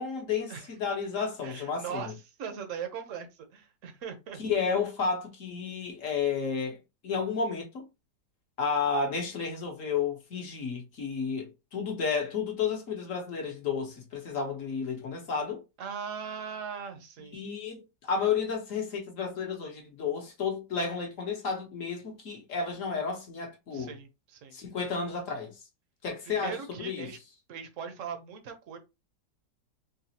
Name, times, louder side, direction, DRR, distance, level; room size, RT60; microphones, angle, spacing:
voice 1, 0.0-2.1 4.4-7.9 8.6-15.6 17.3-23.9 24.5-25.5 26.0-27.1, left 5 dB, 55° left, 1.1 m, -32 dB
voice 2, 1.4-4.4 15.8-17.4 23.7-24.6 26.3-27.2 27.5-28.8, right 7 dB, 55° right, 1.0 m, -40 dB
4.0 x 2.4 x 2.8 m
omnidirectional pair, 1.9 m